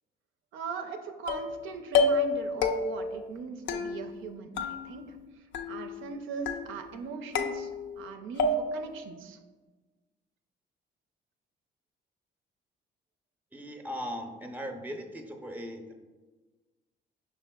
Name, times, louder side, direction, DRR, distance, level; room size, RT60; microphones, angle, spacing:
voice 1, 0.5-7.7 8.0-9.4, right 4 dB, 85° right, 6 dB, 0.4 m, -40 dB
sound 1, 1.3-1.6 1.9-2.4 2.6-3.1 3.7-4.3 4.6-5.2 5.5-6.1 6.5-7.0 7.4-8.1 8.4-8.9, left 3 dB, 70° left, 0.4 m, -29 dB
voice 2, 13.5-15.9, equal, 10° right, 4 dB, 0.5 m, -38 dB
5.3 x 3.5 x 2.2 m, 1.3 s
cardioid pair, 90°, 20 cm